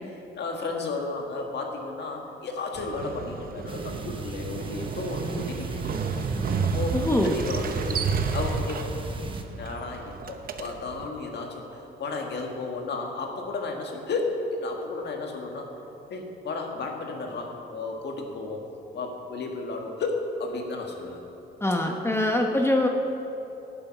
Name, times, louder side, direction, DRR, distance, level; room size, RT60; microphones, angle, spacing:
voice 1, 0.3-6.2 6.6-7.0 7.2-8.0 8.3-15.7 16.1-18.7 18.9-21.2, left 3 dB, 60° left, 2 dB, 1.8 m, -33 dB
Motorcycle, 2.7-11.1, right 5 dB, 45° right, 0.8 m, -31 dB
sound 1, 3.7-9.4, right 3 dB, 25° right, 1.0 m, -39 dB
voice 2, 6.9-7.4 21.6-22.9, left 1 dB, 10° left, 2 dB, 1.0 m, -23 dB
11.0 x 8.7 x 5.9 m, 2.9 s
cardioid pair, 90°, 20 cm